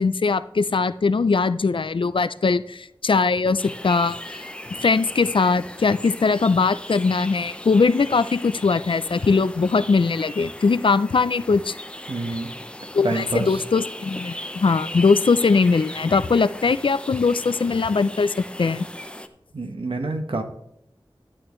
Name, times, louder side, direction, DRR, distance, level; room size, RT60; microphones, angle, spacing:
voice 1, 0.0-4.5 4.8-11.8 12.9-18.9, left 4 dB, 75° left, 14 dB, 0.4 m, -21 dB
sound 1, 3.6-19.3, left 1 dB, 10° left, 0.7 m, -38 dB
voice 2, 12.1-12.5 13.0-13.6 19.5-20.4, right 3 dB, 85° right, 5 dB, 1.1 m, -27 dB
11.0 x 8.8 x 3.1 m, 0.75 s
wide cardioid pair, 55°, 9 cm